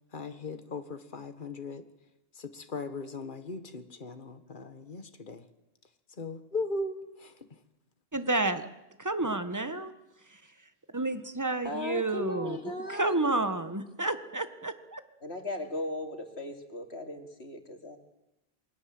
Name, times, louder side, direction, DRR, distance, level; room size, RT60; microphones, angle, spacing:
voice 1, 0.1-1.9 2.3-5.5 6.2-7.6, left 3 dB, 50° left, 9 dB, 1.9 m, -38 dB
voice 2, 8.1-8.7 9.0-9.9 10.3-10.4 10.9-15.0, right 2 dB, 15° right, 10 dB, 1.6 m, -30 dB
voice 3, 11.6-13.4 15.2-18.0, left 1 dB, 75° left, 5 dB, 3.2 m, -37 dB
27.5 x 22.0 x 7.9 m, 0.91 s
omnidirectional pair, 1.1 m